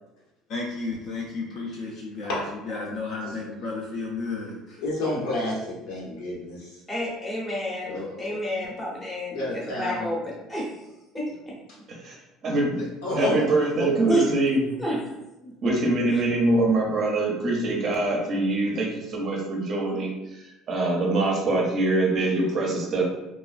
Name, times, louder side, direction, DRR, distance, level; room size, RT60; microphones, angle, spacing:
voice 1, 0.5-4.5, left 3 dB, 50° left, -2 dB, 0.4 m, -33 dB
voice 2, 4.8-6.7 7.9-8.3 9.3-10.1 13.0-13.5 13.8-13.9, left 2 dB, 80° left, -4 dB, 1.0 m, -30 dB
voice 3, 6.9-10.7 11.1-11.3 13.2-13.3 14.1-14.3 14.8-15.5 16.1-16.2, equal, 10° left, -5 dB, 0.7 m, -30 dB
voice 4, 12.4-12.8 13.1-14.6 15.6-20.1 20.4-23.0, right 2 dB, 35° right, -1 dB, 0.6 m, -24 dB
3.0 x 2.2 x 2.4 m, 0.99 s
cardioid pair, 160°, 0 cm